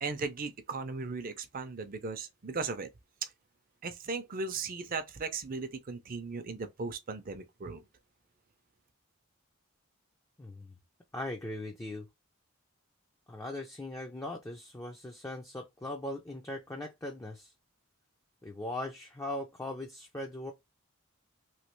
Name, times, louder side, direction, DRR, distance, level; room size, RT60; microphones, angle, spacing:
voice 1, 0.0-2.9 3.2-3.3 3.8-7.8, right 4 dB, 40° right, 0.5 m, -37 dB
voice 2, 10.4-10.7 11.1-12.1 13.3-17.5 18.4-20.5, left 1 dB, 15° left, 0.4 m, -39 dB
3.1 x 2.8 x 3.0 m
head